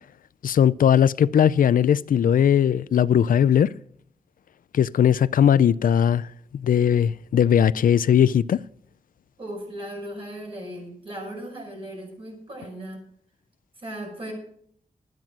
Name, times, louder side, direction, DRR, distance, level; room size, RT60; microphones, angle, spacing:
voice 1, 0.4-3.7 4.7-6.3 6.5-8.6, left 9 dB, 85° left, 0.4 m, -19 dB
voice 2, 9.4-13.0 13.8-14.3, right 1 dB, 40° right, 6.3 m, -37 dB
13.0 x 9.0 x 6.1 m
wide cardioid pair, 140°, 14 cm